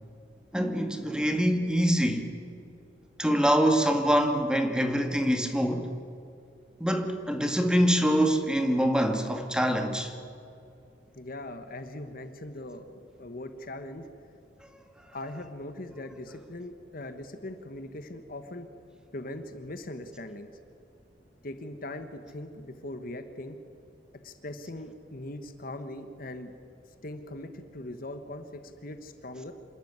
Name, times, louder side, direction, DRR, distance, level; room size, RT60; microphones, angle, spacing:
voice 1, 0.5-2.3 3.2-5.9 6.8-10.1, equal, 5° right, 5 dB, 1.9 m, -25 dB
voice 2, 11.1-14.1 15.1-18.7 19.1-20.5 21.4-23.6 24.2-26.5 27.0-29.5, left 1 dB, 50° left, 9 dB, 1.3 m, -40 dB
27.0 x 13.0 x 9.6 m, 2.6 s
head